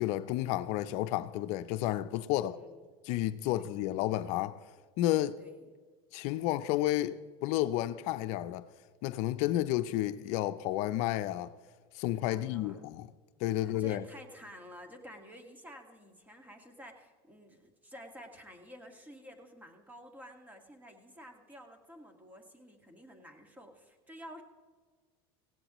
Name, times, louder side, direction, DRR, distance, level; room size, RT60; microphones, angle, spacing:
voice 1, 0.0-2.6 3.0-4.6 5.0-5.4 6.1-8.6 9.0-11.5 11.9-13.1 13.4-14.0, left 14 dB, 60° left, 0.5 m, -31 dB
voice 2, 2.4-2.8 3.5-3.8 5.4-5.7 12.3-12.9 13.5-24.4, equal, 10° right, 1.8 m, -51 dB
16.5 x 16.5 x 3.0 m
supercardioid pair, 125°, 13 cm